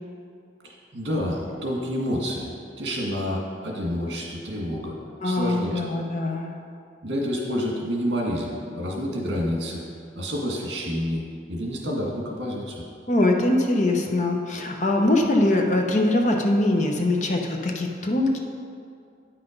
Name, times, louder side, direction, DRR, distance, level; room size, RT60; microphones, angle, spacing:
voice 1, 0.6-2.5 2.8-5.0 5.2-6.0 7.0-9.8 10.1-11.2 11.5-12.8, equal, 70° right, -1 dB, 1.9 m, -28 dB
voice 2, 5.2-6.6 13.1-18.4, left 1 dB, 40° left, 1 dB, 0.8 m, -22 dB
9.3 x 5.9 x 5.2 m, 2.4 s
head